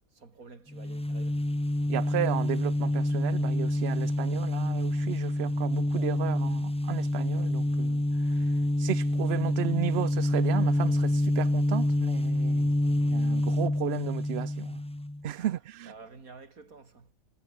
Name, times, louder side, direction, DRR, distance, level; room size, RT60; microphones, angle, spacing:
voice 1, 0.1-1.5 15.3-15.5 15.9-17.1, right 4 dB, 85° right, 3.4 m, -50 dB
sound 1, 0.7-15.2, left 1 dB, 5° left, 0.5 m, -27 dB
voice 2, 1.9-8.0 8.3-8.5 8.8-14.8 15.2-15.9, right 12 dB, 60° right, 0.7 m, -34 dB
omnidirectional pair, 1.4 m